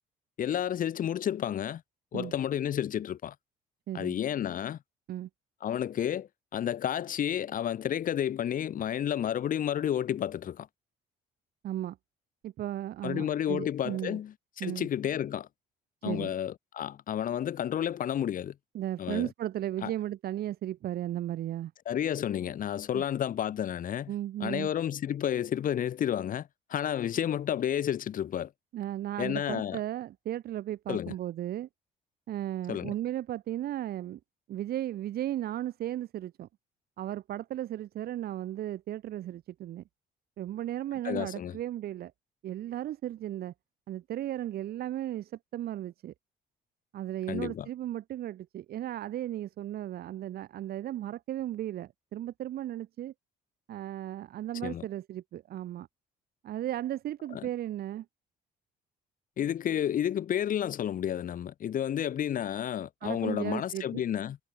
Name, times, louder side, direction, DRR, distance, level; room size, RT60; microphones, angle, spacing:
voice 1, 0.4-1.8 2.1-3.3 3.9-4.8 5.6-10.7 13.0-15.5 16.0-18.5 19.0-19.3 19.8-19.9 21.9-24.1 24.4-28.5 29.2-29.8 30.9-31.1 32.7-32.9 41.0-41.6 47.3-47.7 54.6-54.9 57.3-57.5 59.4-64.4, left 10 dB, 55° left, 3.8 m, -31 dB
voice 2, 3.9-4.2 5.1-5.3 11.6-12.0 12.4-14.2 14.6-14.9 16.0-16.3 18.7-21.7 22.9-23.0 24.1-24.7 28.7-31.7 32.3-34.2 34.5-36.5 37.0-39.8 40.4-42.1 42.4-43.5 43.9-46.1 46.9-53.1 53.7-55.9 56.4-58.1 63.0-64.0, right 12 dB, 65° right, 5.9 m, -35 dB
cardioid pair, 110°, 17 cm